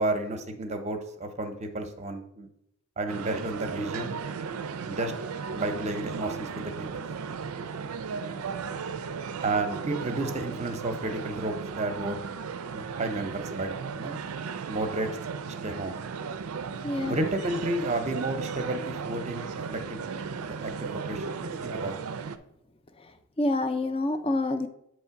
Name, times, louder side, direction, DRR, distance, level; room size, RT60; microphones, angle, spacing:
voice 1, 0.0-2.5 3.0-4.1 4.9-5.1 5.5-7.0 9.4-12.2 12.7-14.2 14.7-15.1 15.5-16.0 17.0-20.0 20.5-22.0, right 2 dB, 30° right, 7 dB, 0.7 m, -32 dB
sound 1, 3.1-22.4, right 5 dB, 90° right, 0.4 m, -36 dB
voice 2, 16.8-17.2 23.4-24.7, left 2 dB, 25° left, 8 dB, 0.5 m, -27 dB
8.2 x 3.1 x 5.7 m, 0.77 s
head